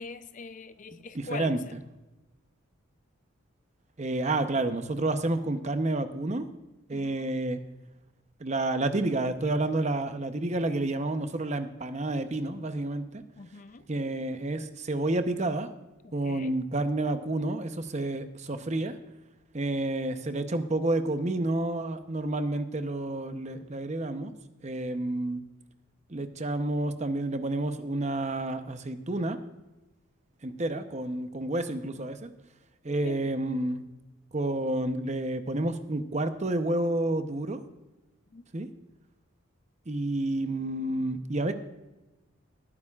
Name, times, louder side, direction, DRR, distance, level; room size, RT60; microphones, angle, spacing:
voice 1, 0.0-1.7 6.9-7.3 13.4-13.8 16.0-16.5 33.0-33.2 38.3-38.4, left 4 dB, 35° left, 12 dB, 0.4 m, -43 dB
voice 2, 0.9-1.8 4.0-6.5 6.9-7.6 8.4-13.2 13.9-15.7 16.1-19.0 19.5-24.3 24.6-25.4 26.1-29.4 30.4-32.3 32.8-33.8 34.3-37.6 38.5-38.7 39.9-41.5, right 2 dB, 30° right, 9 dB, 0.7 m, -30 dB
19.0 x 9.8 x 2.4 m, 1.0 s
head